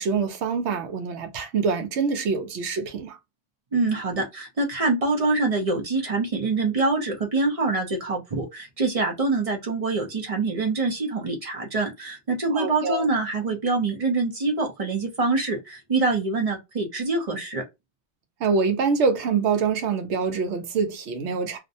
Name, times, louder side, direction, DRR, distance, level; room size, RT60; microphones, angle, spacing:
voice 1, 0.0-3.2 12.5-13.1 18.4-21.6, right 5 dB, 80° right, 0.9 m, -25 dB
voice 2, 3.7-17.6, right 3 dB, 40° right, 0.6 m, -25 dB
2.5 x 2.1 x 2.6 m
omnidirectional pair, 1.1 m